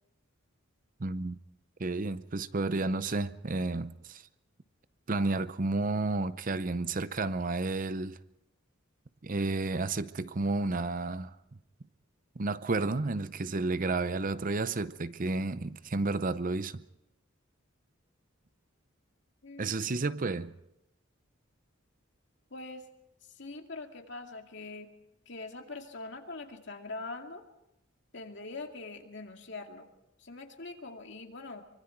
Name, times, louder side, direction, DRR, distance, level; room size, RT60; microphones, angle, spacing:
voice 1, 1.0-1.4 1.8-4.2 5.1-8.2 9.2-11.4 12.4-16.8 19.6-20.6, right 3 dB, 40° right, 0.7 m, -31 dB
voice 2, 19.4-20.0 22.5-22.8 23.2-24.9 25.3-27.4 28.1-29.9 30.2-31.6, left 3 dB, 60° left, 2.4 m, -43 dB
24.5 x 24.5 x 4.6 m
head